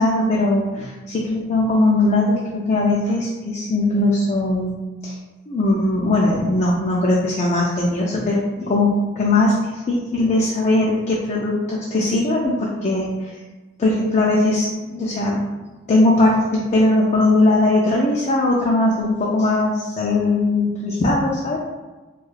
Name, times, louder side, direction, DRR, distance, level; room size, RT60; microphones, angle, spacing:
voice 1, 0.0-5.1 5.5-13.3 13.8-15.4 15.9-21.6, left 2 dB, 35° left, -4 dB, 0.3 m, -19 dB
2.4 x 2.3 x 3.1 m, 1.2 s
head